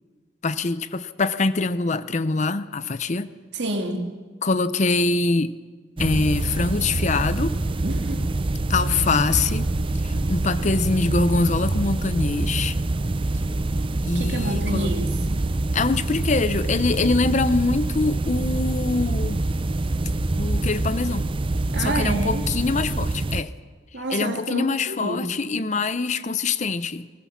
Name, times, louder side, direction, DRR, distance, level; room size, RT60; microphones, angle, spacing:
voice 1, 0.4-3.3 4.4-5.6 6.0-7.5 8.7-9.7 10.0-12.8 14.0-14.9 15.7-19.4 20.4-21.3 21.8-23.5 24.1-27.1, left 3 dB, 40° left, 0.6 m, -24 dB
voice 2, 3.5-4.1 7.8-8.3 14.1-15.1 21.7-22.4 23.9-25.3, right 1 dB, 60° right, 2.3 m, -28 dB
sound 1, 6.0-23.4, right 2 dB, 30° right, 0.5 m, -25 dB
20.0 x 19.0 x 7.3 m
head